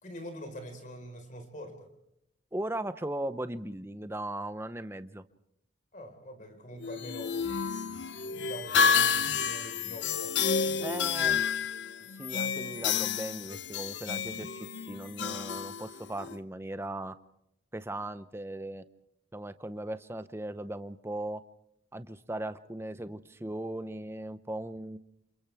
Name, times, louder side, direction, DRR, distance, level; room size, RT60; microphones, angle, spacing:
voice 1, 0.0-1.8 5.9-7.4 8.3-10.4 10.6-11.4, equal, 40° left, 6 dB, 4.5 m, -44 dB
voice 2, 2.5-5.2 10.8-11.4 12.1-17.1 17.7-18.8 19.3-21.4 21.9-25.0, right 1 dB, 10° right, 11 dB, 0.7 m, -38 dB
sound 1, 6.8-16.4, left 6 dB, 60° left, 0.8 m, -30 dB
29.0 x 28.5 x 3.5 m, 0.80 s
head